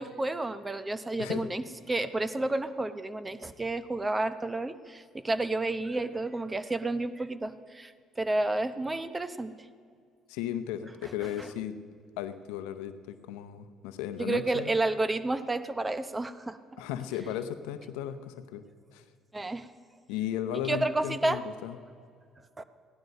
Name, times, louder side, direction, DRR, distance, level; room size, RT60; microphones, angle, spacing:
voice 1, 0.0-9.5 11.0-11.5 14.2-16.6 19.3-19.7 20.5-21.4 22.6-22.7, right 2 dB, 20° right, 13 dB, 0.8 m, -31 dB
voice 2, 10.3-11.8 12.2-14.7 16.8-18.6 18.9-19.0 20.1-21.8, left 10 dB, 85° left, 11 dB, 0.7 m, -35 dB
16.0 x 11.5 x 5.4 m, 2.2 s
supercardioid pair, 65°, 0 cm